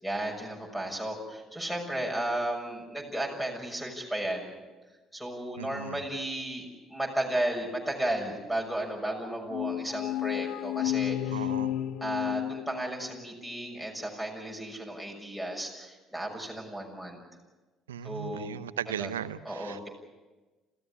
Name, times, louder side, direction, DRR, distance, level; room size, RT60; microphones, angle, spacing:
voice 1, 0.0-4.5 5.1-11.4 12.0-17.2 18.0-18.6 18.9-19.1 19.4-19.9, right 1 dB, ahead, 1 dB, 6.5 m, -34 dB
voice 2, 5.6-6.0 11.3-11.7 17.9-19.9, right 10 dB, 80° right, 14 dB, 0.8 m, -37 dB
sound 1, 9.5-13.3, left 13 dB, 60° left, 0.7 m, -32 dB
27.5 x 16.0 x 8.4 m, 1.2 s
figure-of-eight pair, 55°, 0 cm